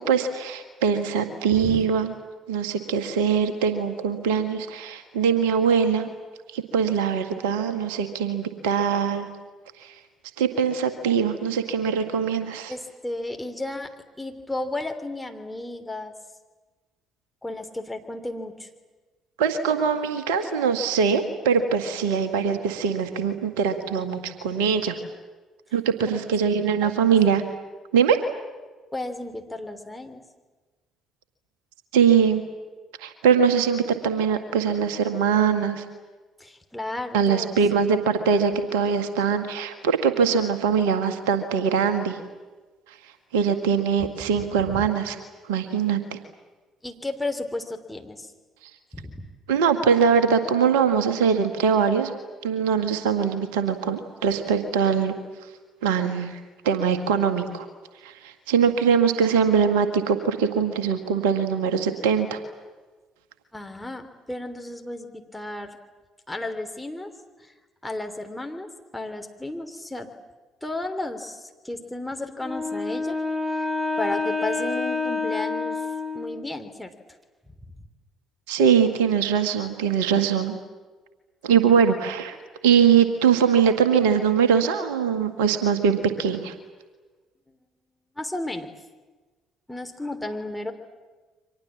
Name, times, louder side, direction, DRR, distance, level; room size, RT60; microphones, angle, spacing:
voice 1, 0.0-2.1 2.5-6.1 6.5-9.3 9.8-9.9 10.4-12.7 19.4-25.0 25.7-27.4 27.9-28.2 31.9-32.4 33.0-35.8 37.1-42.2 43.3-45.1 45.5-46.2 49.5-52.1 52.4-55.1 55.8-56.4 56.6-57.7 58.0-62.4 78.5-80.5 81.4-82.4 82.6-86.5, right 6 dB, 70° right, 9 dB, 1.8 m, -22 dB
voice 2, 12.7-16.1 17.4-18.7 26.6-27.1 28.9-30.2 36.4-37.8 44.2-44.3 44.7-44.8 46.8-48.3 48.9-49.3 63.5-65.8 66.3-67.1 67.4-67.5 67.8-70.1 70.6-73.2 73.5-73.7 74.0-75.9 76.1-76.9 77.6-77.7 88.2-88.7 89.7-90.7, left 2 dB, 5° left, 5 dB, 3.2 m, -33 dB
Wind instrument woodwind instrument, 72.4-76.6, left 3 dB, 10° right, 3.5 m, -28 dB
30.0 x 24.5 x 7.4 m, 1.3 s
figure-of-eight pair, 45°, 0 cm